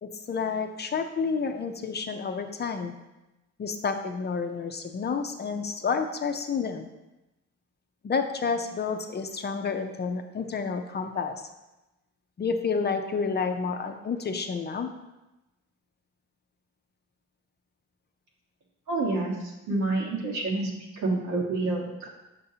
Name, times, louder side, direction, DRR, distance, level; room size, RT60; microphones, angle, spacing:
voice 1, 0.0-3.0 3.6-6.9 8.0-11.4 12.4-14.9 19.7-19.8, left 5 dB, 35° left, 6 dB, 0.5 m, -30 dB
voice 2, 18.9-22.1, right 2 dB, 75° right, -2 dB, 1.5 m, -28 dB
6.8 x 5.4 x 2.8 m, 1.0 s
cardioid pair, 90°, 30 cm